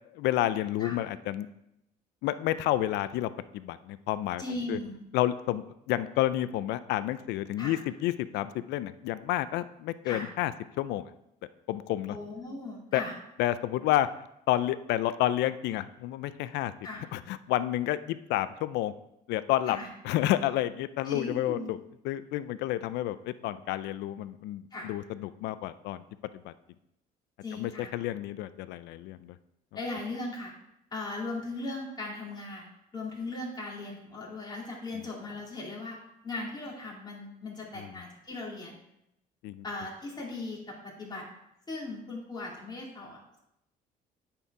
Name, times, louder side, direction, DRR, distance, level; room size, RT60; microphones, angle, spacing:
voice 1, 0.1-1.5 2.2-4.4 4.7-4.8 5.1-10.5 10.8-11.1 11.7-12.2 12.9-13.0 13.4-14.1 14.5-16.7 17.1-18.9 19.3-19.8 20.0-21.8 22.0-26.0 26.4-26.5 27.5-29.4 37.7-37.9 39.4-39.6, left 14 dB, 85° left, 14 dB, 0.4 m, -30 dB
voice 2, 4.4-5.0 7.6-7.8 10.1-10.3 12.1-13.1 16.8-17.0 19.7-19.9 21.0-21.7 24.7-24.9 27.4-27.9 29.7-30.5 30.9-36.0 36.2-38.8 39.6-41.3 41.7-43.4, left 2 dB, 25° left, -3 dB, 2.6 m, -38 dB
8.9 x 4.4 x 4.8 m, 0.83 s
cardioid pair, 110°, 17 cm